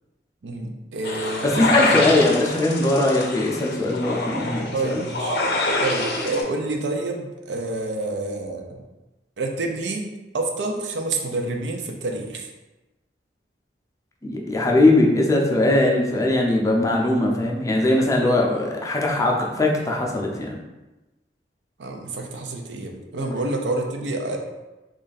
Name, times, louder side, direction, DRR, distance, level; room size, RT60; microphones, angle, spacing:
voice 1, 0.4-2.0 4.7-5.4 5.8-8.8 9.4-10.1 10.3-12.5 21.8-24.4, right 2 dB, 70° right, 3 dB, 0.5 m, -28 dB
sound 1, 1.0-6.4, left 2 dB, 60° left, 0.6 m, -26 dB
voice 2, 1.4-5.0 14.2-20.6, left 2 dB, 20° left, -1 dB, 0.5 m, -20 dB
3.1 x 2.5 x 4.0 m, 1.1 s
head